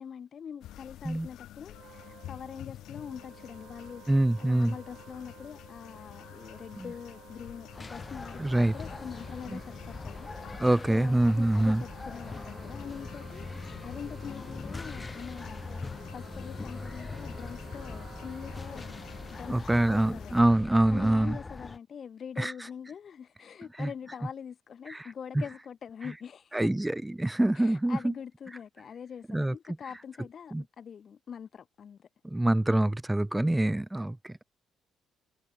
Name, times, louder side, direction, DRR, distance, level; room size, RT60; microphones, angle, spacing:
voice 1, 0.0-15.8 16.1-20.4 20.9-26.7 27.5-32.1, left 7 dB, 50° left, 3.3 m, -44 dB
sound 1, 0.6-20.4, left 13 dB, 75° left, 5.1 m, -49 dB
Wind instrument woodwind instrument, 1.6-19.7, right 11 dB, 70° right, 5.2 m, -53 dB
voice 2, 4.1-4.7 6.8-6.9 8.4-8.7 9.5-9.6 10.6-11.8 19.5-21.4 22.4-22.5 23.8-23.9 26.5-26.9 27.2-28.1 29.3-29.5 30.5-30.6 32.2-34.4, right 1 dB, 10° right, 0.3 m, -25 dB
sound 2, 7.7-21.8, left 3 dB, 25° left, 4.6 m, -42 dB
cardioid pair, 85°, 0 cm